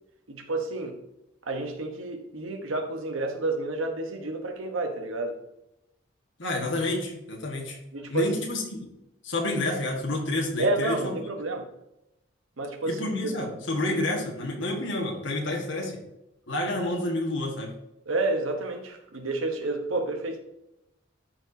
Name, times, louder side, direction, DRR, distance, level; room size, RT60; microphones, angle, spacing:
voice 1, 0.3-1.0 1.4-5.4 7.9-8.3 10.6-11.7 12.6-13.5 18.1-20.4, right 2 dB, 90° right, 4 dB, 1.2 m, -30 dB
voice 2, 6.4-7.8 8.1-8.9 9.2-11.0 12.9-16.0 16.5-17.7, left 2 dB, 65° left, 0 dB, 1.6 m, -29 dB
13.0 x 4.5 x 2.8 m, 0.86 s
head